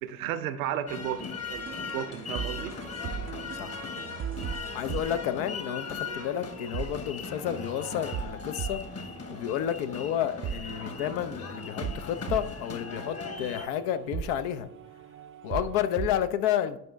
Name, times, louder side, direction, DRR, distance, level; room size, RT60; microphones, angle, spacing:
voice 1, 0.0-2.7, right 10 dB, 70° right, 0.8 m, -34 dB
sound 1, 0.9-13.7, left 5 dB, 35° left, 1.4 m, -39 dB
sound 2, 1.5-16.1, right 8 dB, 30° right, 0.5 m, -39 dB
voice 2, 3.5-3.8 4.7-14.7 15.4-16.8, left 10 dB, 60° left, 0.7 m, -31 dB
10.5 x 5.2 x 3.4 m
figure-of-eight pair, 55°, 45 cm